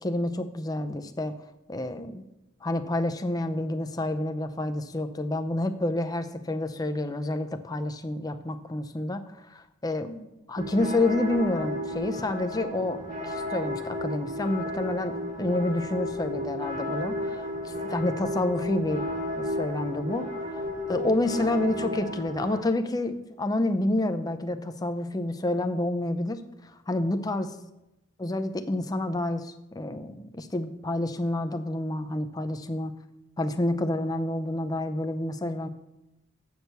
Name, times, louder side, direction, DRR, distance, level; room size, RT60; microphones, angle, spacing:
voice 1, 0.0-1.3 1.7-2.3 2.6-19.1 19.4-20.6 20.9-26.4 26.9-27.5 28.2-33.0 33.4-35.7, left 1 dB, 15° left, 8 dB, 0.5 m, -29 dB
sound 1, 10.6-22.6, left 1 dB, 35° right, 2.2 m, -33 dB
8.3 x 6.4 x 6.7 m, 0.93 s
head